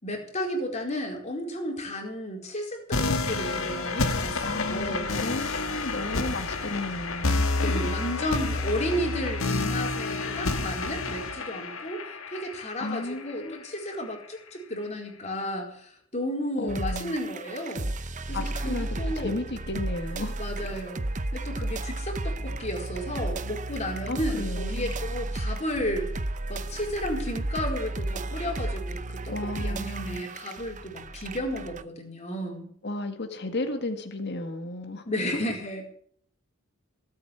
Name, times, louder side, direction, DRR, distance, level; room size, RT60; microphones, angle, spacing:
voice 1, 0.0-5.1 7.4-17.9 18.3-19.3 20.4-21.1 21.3-26.1 26.5-32.7 35.0-35.9, equal, 35° left, 1 dB, 4.5 m, -33 dB
sound 1, 2.9-13.9, left 3 dB, 80° left, 1.8 m, -29 dB
voice 2, 4.4-8.0 10.2-10.5 12.8-13.6 16.6-17.1 18.3-18.9 19.2-20.8 24.1-24.9 29.3-30.2 32.8-35.0, left 2 dB, 55° left, 6 dB, 1.8 m, -34 dB
sound 2, 16.7-31.8, right 2 dB, 35° right, 0.8 m, -33 dB
18.0 x 8.5 x 8.8 m, 0.62 s
head